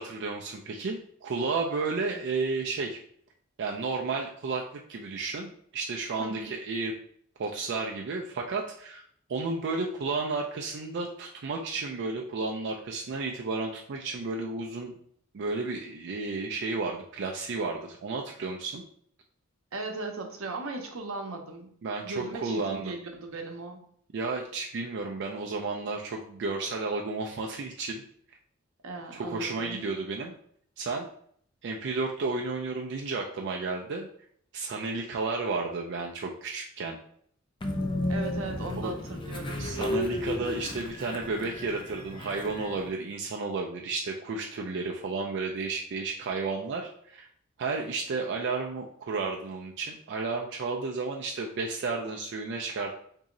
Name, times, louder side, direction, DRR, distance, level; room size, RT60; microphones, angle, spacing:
voice 1, 0.0-3.0 3.6-4.6 4.9-6.9 7.4-9.0 9.3-14.9 15.3-18.8 21.8-22.9 24.1-28.0 29.1-30.3 30.8-31.1 31.6-34.1 34.5-37.0 38.8-38.9 39.6-47.3 47.6-52.9, right 3 dB, 60° right, 0 dB, 0.4 m, -32 dB
voice 2, 6.2-6.5 19.7-21.7 22.0-23.8 28.8-29.8 38.1-39.7, right 3 dB, 85° right, 3 dB, 0.7 m, -37 dB
Train, 37.6-42.9, left 1 dB, 25° left, 0.4 m, -33 dB
3.0 x 2.7 x 3.7 m, 0.62 s
head